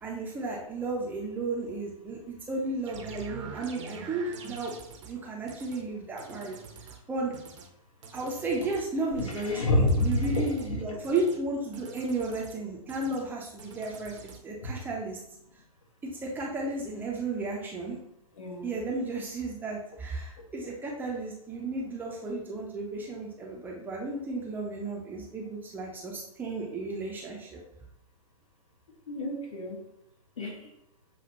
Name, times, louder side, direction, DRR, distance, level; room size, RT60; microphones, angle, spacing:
voice 1, 0.0-4.7 5.1-6.6 6.9-7.3 8.1-15.2 16.0-18.0 18.6-27.6, right 2 dB, 10° right, -3 dB, 0.6 m, -33 dB
sound 1, 2.8-5.1 5.5-5.8 6.2-7.0 7.3-7.7 8.0-8.8 9.2-9.5 9.9-10.7 11.0-11.4 11.7-12.5 12.9-13.2 13.6-14.4, right 5 dB, 55° right, 0.8 m, -46 dB
voice 2, 9.4-10.8 18.4-18.7 29.1-29.8 30.4-30.7, left 1 dB, 60° left, -1 dB, 1.5 m, -28 dB
6.9 x 2.4 x 2.8 m, 0.79 s
figure-of-eight pair, 115°, 19 cm